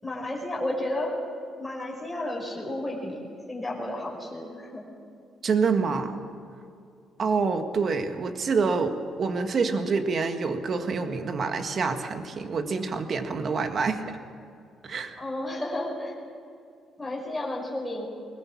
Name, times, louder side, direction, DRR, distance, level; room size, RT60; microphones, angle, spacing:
voice 1, 0.0-1.1 1.6-4.9 15.2-16.1 17.0-18.1, left 1 dB, 5° left, -3 dB, 5.3 m, -32 dB
voice 2, 5.4-6.2 7.2-14.2 14.8-15.2, right 4 dB, 45° right, 7 dB, 1.7 m, -27 dB
21.0 x 20.5 x 7.3 m, 2.4 s
cardioid pair, 130°, 0 cm